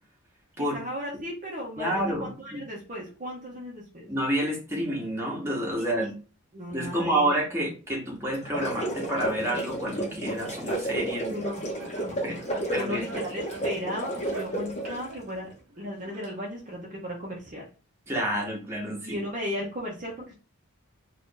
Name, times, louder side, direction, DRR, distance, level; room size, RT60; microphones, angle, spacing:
voice 1, 0.7-4.1 5.8-6.1 6.5-7.3 11.3-11.6 12.0-17.7 19.1-20.3, equal, 35° right, -2 dB, 0.7 m, -36 dB
voice 2, 1.8-2.6 4.1-6.1 6.7-11.4 12.2-12.4 12.7-13.2 18.1-19.2, right 1 dB, 10° right, -3 dB, 1.0 m, -29 dB
sound 1, 8.3-15.1, right 1 dB, 30° left, 0.8 m, -32 dB
Laughter, 10.9-16.7, right 3 dB, 85° right, 0.9 m, -44 dB
2.5 x 2.5 x 3.7 m, 0.36 s
head